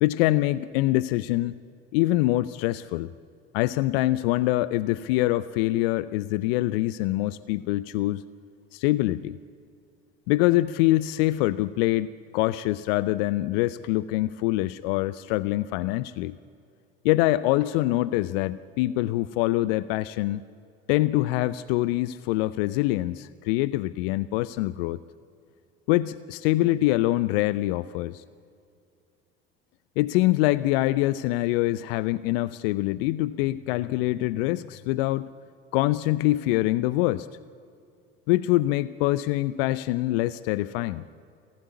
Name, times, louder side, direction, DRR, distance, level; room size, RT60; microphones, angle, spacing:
voice 1, 0.0-1.5 1.9-3.1 3.5-8.2 8.7-9.4 10.3-16.4 17.0-20.4 20.9-25.0 25.9-28.2 30.0-35.3 35.7-37.3 38.3-41.0, left 17 dB, 65° left, 18 dB, 0.6 m, -24 dB
26.5 x 16.5 x 9.5 m, 2.5 s
hypercardioid pair, 65°, 31 cm